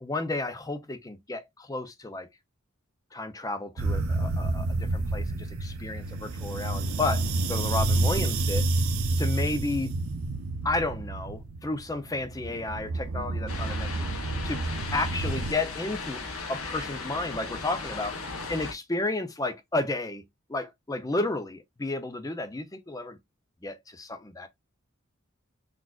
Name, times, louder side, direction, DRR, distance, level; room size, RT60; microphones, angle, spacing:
voice 1, 0.0-2.3 3.1-7.2 7.5-8.7 9.2-9.9 10.6-13.9 14.4-14.6 14.9-16.2 16.5-18.1 18.5-20.2 20.5-23.2 23.6-24.5, left 2 dB, 15° left, 0.5 m, -32 dB
sound 1, 3.8-15.5, right 2 dB, 80° right, 0.6 m, -29 dB
sound 2, 13.5-18.7, left 3 dB, 85° left, 1.0 m, -37 dB
6.0 x 2.4 x 2.3 m
head